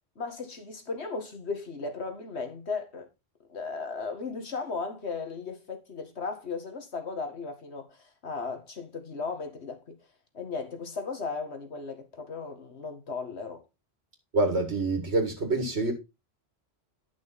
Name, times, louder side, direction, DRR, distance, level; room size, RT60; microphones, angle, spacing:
voice 1, 0.2-3.1 3.5-10.0 10.3-13.6, left 4 dB, 80° left, 2.1 m, -36 dB
voice 2, 14.3-15.9, right 2 dB, 85° right, 2.2 m, -26 dB
11.0 x 6.0 x 4.1 m
omnidirectional pair, 1.1 m